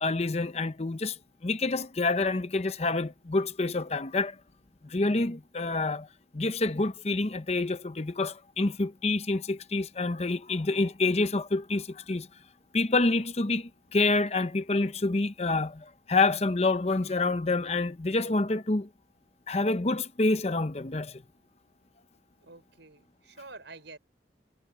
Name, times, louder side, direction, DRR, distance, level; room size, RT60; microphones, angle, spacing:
voice 1, 0.0-4.4 4.8-6.1 6.3-12.3 12.7-18.9 19.5-21.2, left 3 dB, 35° left, 0.7 m, -27 dB
voice 2, 22.4-24.0, right 3 dB, 80° right, 5.0 m, -48 dB
head